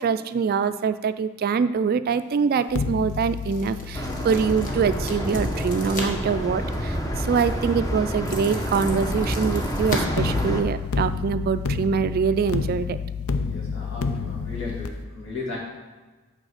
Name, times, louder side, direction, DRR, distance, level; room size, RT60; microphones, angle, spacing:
voice 1, 0.0-13.0, right 6 dB, 45° right, 12 dB, 0.3 m, -24 dB
sound 1, 2.1-11.2, left 1 dB, 40° left, 1.5 m, -38 dB
sound 2, 2.7-7.8 10.2-14.9, left 5 dB, 90° left, 0.6 m, -31 dB
sound 3, 3.9-10.6, equal, 15° left, 0.8 m, -28 dB
voice 2, 13.4-15.6, left 3 dB, 60° left, -4 dB, 2.6 m, -35 dB
8.7 x 4.2 x 6.4 m, 1.3 s
head